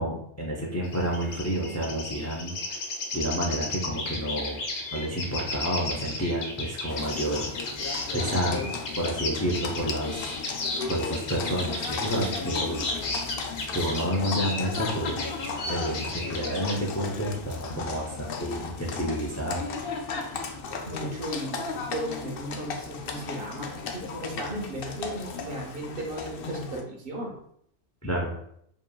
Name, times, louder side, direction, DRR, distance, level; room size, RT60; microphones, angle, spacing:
voice 1, 0.0-2.8 3.1-4.6 4.9-7.5 8.1-10.3 10.9-12.8 13.7-15.3 15.7-19.7 28.0-28.3, equal, 20° left, -2 dB, 0.4 m, -30 dB
sound 1, 0.8-16.8, left 2 dB, 85° left, 1.1 m, -34 dB
Livestock farm animals working animals, 6.9-26.8, left 4 dB, 65° left, 0.7 m, -36 dB
voice 2, 20.9-23.7 23.9-27.4, right 1 dB, 60° right, 0 dB, 1.0 m, -35 dB
4.9 x 3.0 x 2.3 m, 0.69 s
omnidirectional pair, 1.1 m